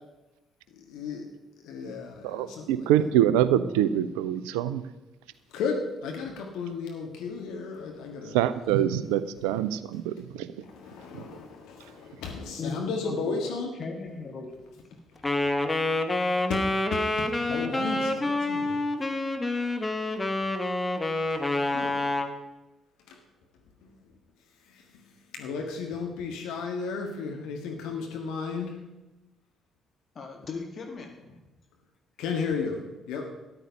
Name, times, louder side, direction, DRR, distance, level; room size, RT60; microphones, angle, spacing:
voice 1, 0.8-1.2 1.6-3.2 5.5-8.4 10.6-13.8 16.5-16.6 16.9-18.8 19.5-19.8 21.6-22.0 23.1-23.2 24.7-25.0 25.3-28.8 32.2-33.3, left 5 dB, 65° left, 2 dB, 1.7 m, -34 dB
voice 2, 2.2-4.8 8.3-10.5 11.1-11.2, right 11 dB, 70° right, 14 dB, 0.6 m, -25 dB
voice 3, 12.6-14.5 14.9-15.0 30.2-31.4, left 4 dB, 45° left, 3 dB, 1.9 m, -38 dB
Wind instrument woodwind instrument, 15.2-22.4, left 2 dB, 20° left, 1.4 m, -27 dB
13.5 x 11.0 x 5.4 m, 1.0 s
figure-of-eight pair, 45°, 0 cm